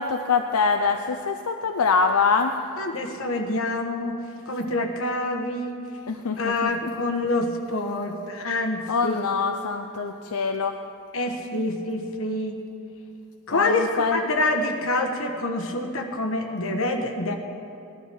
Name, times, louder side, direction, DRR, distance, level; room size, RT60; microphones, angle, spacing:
voice 1, 0.0-2.5 6.1-6.7 8.9-10.7 13.5-14.2, left 5 dB, 80° left, 5 dB, 0.6 m, -24 dB
voice 2, 2.8-4.2 4.5-5.8 6.4-9.3 11.1-12.6 13.5-17.3, left 2 dB, 65° left, 3 dB, 1.4 m, -26 dB
18.0 x 12.0 x 4.7 m, 2.6 s
head